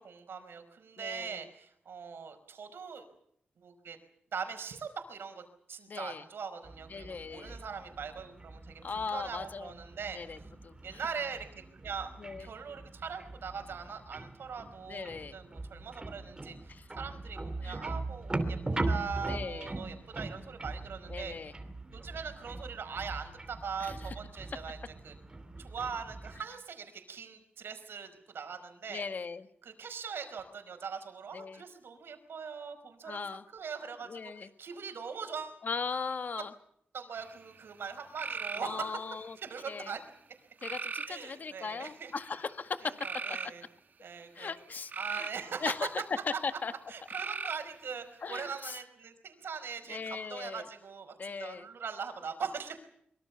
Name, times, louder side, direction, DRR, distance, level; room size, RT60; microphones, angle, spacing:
voice 1, 0.0-3.1 3.6-4.0 4.3-5.4 5.7-10.2 10.8-12.1 12.4-21.3 21.9-24.8 25.0-25.1 25.6-29.0 29.6-35.6 36.9-39.1 39.4-40.2 41.0-42.1 42.8-43.6 44.0-44.5 45.0-45.7 46.3-46.4 46.9-51.1 51.4-52.8, right 6 dB, 75° right, 7 dB, 5.0 m, -41 dB
voice 2, 1.0-1.4 5.9-6.2 6.9-7.6 8.8-9.8 10.1-11.0 12.2-12.5 14.9-15.4 16.7-16.9 17.6-17.8 19.3-19.7 21.1-21.5 23.8-24.1 28.9-29.5 31.3-31.6 33.0-33.4 34.0-34.5 35.6-36.5 38.6-39.4 39.7-39.9 40.6-43.0 44.3-45.3 45.6-46.0 46.4-46.7 48.2-48.8 49.9-50.7 51.2-51.7, left 5 dB, 50° left, 9 dB, 1.8 m, -38 dB
sound 1, 6.6-26.4, right 2 dB, 20° right, 2.9 m, -41 dB
sound 2, 37.2-37.6 38.2-38.7 39.4-39.9 40.6-41.2 41.9-42.2 43.0-43.5 44.6-45.4 47.1-47.8, right 5 dB, 50° right, 1.6 m, -38 dB
24.5 x 23.5 x 7.0 m, 0.70 s
wide cardioid pair, 135°, 4 cm